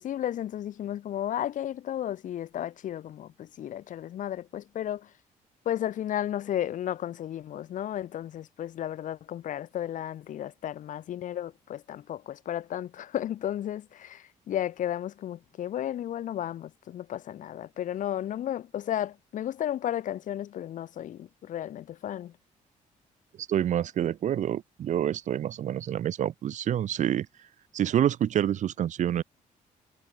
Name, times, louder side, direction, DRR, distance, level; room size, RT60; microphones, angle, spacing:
voice 1, 0.0-5.1 5.6-22.3, left 11 dB, 70° left, 6.2 m, -33 dB
voice 2, 23.5-27.3 27.7-29.2, right 10 dB, 60° right, 3.3 m, -27 dB
cardioid pair, 140°, 14 cm